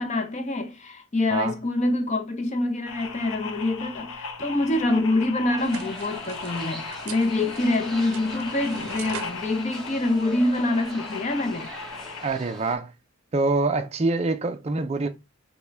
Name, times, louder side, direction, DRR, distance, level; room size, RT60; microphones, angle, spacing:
voice 1, 0.0-11.7, left 2 dB, 30° left, 0.6 m, -25 dB
sound 1, 2.9-12.3, left 4 dB, 85° left, 0.6 m, -38 dB
sound 2, 5.6-12.7, equal, ahead, 0.8 m, -42 dB
sound 3, 5.6-10.9, right 8 dB, 90° right, 0.5 m, -43 dB
voice 2, 12.2-12.9 13.3-15.1, right 3 dB, 30° right, 0.4 m, -25 dB
5.6 x 2.2 x 3.3 m
head